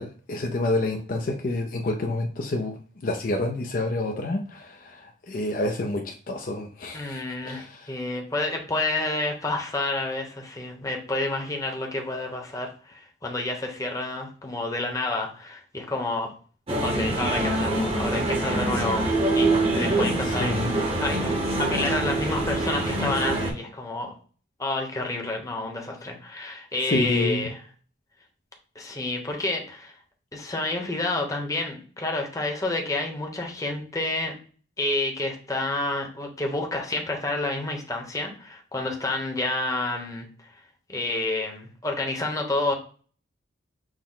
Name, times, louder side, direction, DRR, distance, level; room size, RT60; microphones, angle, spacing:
voice 1, 0.0-2.8 3.0-7.9 20.4-20.7 26.9-27.5, left 2 dB, 45° left, 3 dB, 0.4 m, -28 dB
voice 2, 6.9-16.3 16.8-19.1 19.3-19.5 19.7-24.1 24.6-27.6 28.7-29.9 30.3-34.3 34.8-40.3 40.9-42.7, left 2 dB, 15° left, 2 dB, 0.8 m, -29 dB
sound 1, 16.7-23.5, right 2 dB, 30° right, 0.9 m, -25 dB
6.2 x 2.1 x 3.8 m, 0.42 s
head